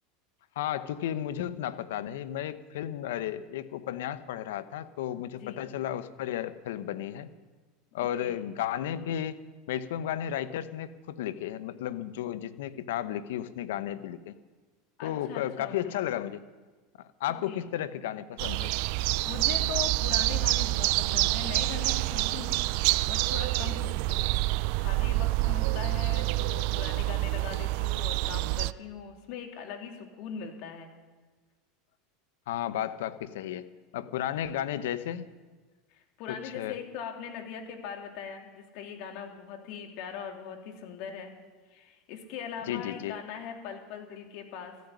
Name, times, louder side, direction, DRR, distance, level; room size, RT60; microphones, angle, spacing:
voice 1, 0.6-7.3 7.9-9.4 9.7-14.3 15.0-16.4 17.2-18.7 32.5-33.7 33.9-35.3 36.5-36.8 42.7-43.2, left 11 dB, 75° left, 13 dB, 1.0 m, -33 dB
voice 2, 5.3-5.6 8.0-8.4 15.0-16.0 17.5-17.7 19.3-22.6 23.1-24.4 24.8-30.9 35.9-41.3 41.7-44.8, left 7 dB, 60° left, 3 dB, 3.0 m, -41 dB
sound 1, 18.4-28.7, right 20 dB, 65° right, 0.4 m, -27 dB
14.5 x 9.4 x 9.8 m, 1.3 s
hypercardioid pair, 100°, 0 cm